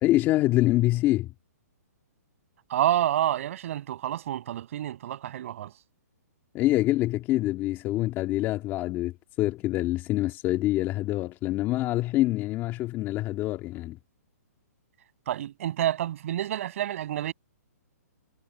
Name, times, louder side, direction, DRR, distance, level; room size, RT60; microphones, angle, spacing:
voice 1, 0.0-1.3 6.5-14.0, left 16 dB, 25° left, 1.9 m, -25 dB
voice 2, 2.7-5.7 15.3-17.3, right 12 dB, 55° right, 6.9 m, -28 dB
hypercardioid pair, 150°, 9 cm